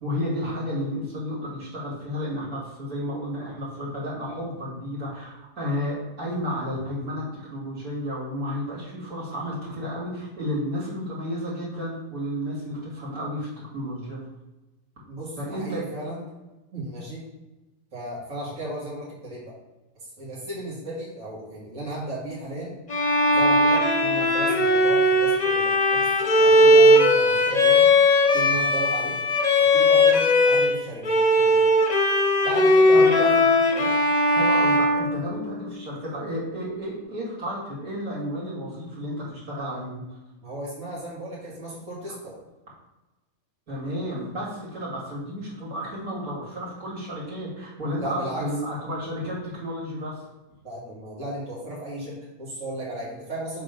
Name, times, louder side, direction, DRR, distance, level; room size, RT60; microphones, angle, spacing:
voice 1, 0.0-14.2 15.4-15.9 32.9-33.3 34.3-40.0 43.7-50.3, equal, 85° right, -6 dB, 2.8 m, -32 dB
voice 2, 15.1-16.2 16.7-17.2 17.9-19.6 20.2-22.7 23.3-27.9 28.3-29.2 29.6-31.7 32.4-33.5 33.7-33.9 40.4-42.3 48.0-48.5 50.6-53.6, right 1 dB, 65° right, -8 dB, 2.5 m, -35 dB
Bowed string instrument, 22.9-30.8 31.0-35.8, left 1 dB, 35° left, 0.7 m, -19 dB
6.9 x 3.6 x 5.2 m, 1.1 s
omnidirectional pair, 1.5 m